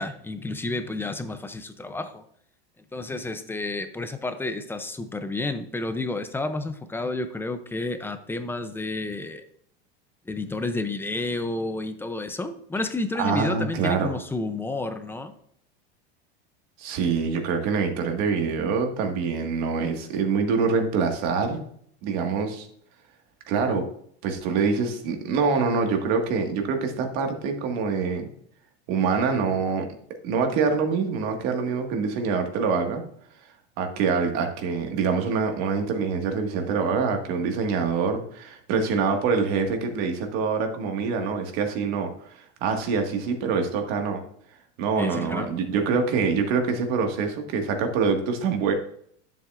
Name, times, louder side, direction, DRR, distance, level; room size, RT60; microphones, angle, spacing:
voice 1, 0.0-2.2 2.9-9.4 10.3-15.3 45.0-45.5, left 2 dB, 5° left, 9 dB, 0.5 m, -30 dB
voice 2, 13.2-14.1 16.8-21.6 22.0-22.7 23.5-23.9 24.2-28.3 28.9-29.9 30.2-33.0 33.8-44.2 44.8-48.7, right 5 dB, 55° right, 4 dB, 1.8 m, -25 dB
11.0 x 7.5 x 2.5 m, 0.64 s
supercardioid pair, 140°, 34 cm